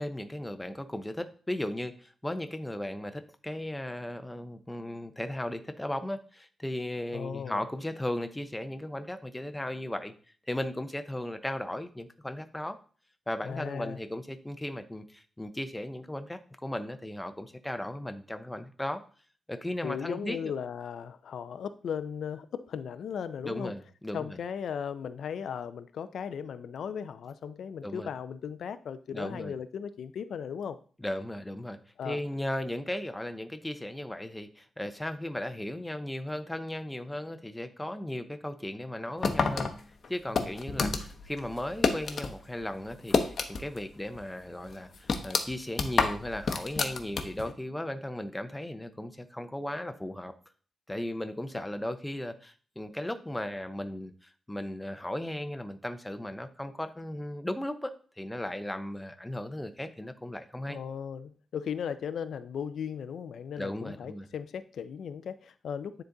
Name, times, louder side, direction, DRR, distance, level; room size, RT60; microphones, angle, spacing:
voice 1, 0.0-10.1 10.5-12.8 13.3-19.0 19.5-20.4 23.4-24.4 27.8-28.1 29.1-29.5 31.0-31.8 32.0-39.7 40.1-50.3 50.9-60.8 63.6-64.3, left 1 dB, 10° left, 8 dB, 0.6 m, -36 dB
voice 2, 7.1-7.6 13.4-14.0 19.8-23.7 24.1-30.8 32.0-32.2 51.5-51.6 60.7-66.0, left 7 dB, 80° left, 12 dB, 0.4 m, -37 dB
sound 1, 39.2-42.3 42.6-43.9 44.1-44.2 44.7-47.5, left 4 dB, 50° left, 0.8 m, -29 dB
9.5 x 3.9 x 3.9 m, 0.41 s
wide cardioid pair, 135°, 0 cm